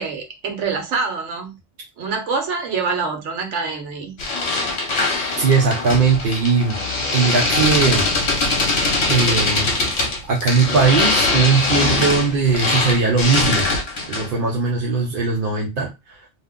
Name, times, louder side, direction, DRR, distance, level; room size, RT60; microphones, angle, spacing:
voice 1, 0.0-1.6 2.0-4.2, right 4 dB, 70° right, 1.1 m, -25 dB
sound 1, 4.2-14.4, left 3 dB, 75° left, 1.0 m, -21 dB
voice 2, 5.4-6.8 7.1-8.1 9.1-13.7 14.1-16.2, right 4 dB, 55° right, 0.7 m, -19 dB
2.7 x 2.1 x 3.5 m
omnidirectional pair, 1.3 m